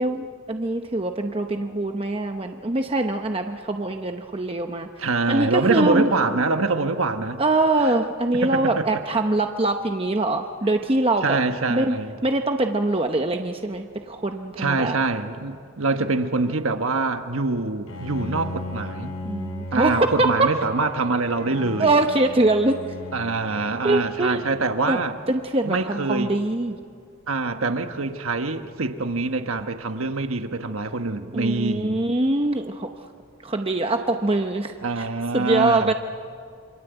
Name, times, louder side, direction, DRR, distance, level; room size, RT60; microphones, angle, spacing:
voice 1, 0.0-4.9 5.3-6.1 7.4-11.4 11.7-12.0 12.2-15.0 19.2-20.3 21.8-22.8 23.8-24.5 24.9-25.0 25.3-26.8 31.3-32.9 33.4-35.1 35.3-35.9, right 2 dB, 25° right, 5 dB, 0.8 m, -23 dB
voice 2, 5.0-7.4 7.8-7.9 8.4-8.9 11.2-12.1 14.6-19.2 19.7-21.9 23.1-25.1 25.6-26.3 27.3-32.0 34.8-35.9, right 3 dB, 75° right, 7 dB, 1.3 m, -25 dB
Bowed string instrument, 17.9-25.0, left 2 dB, 85° left, 4.5 m, -37 dB
27.5 x 25.0 x 8.1 m, 2.2 s
head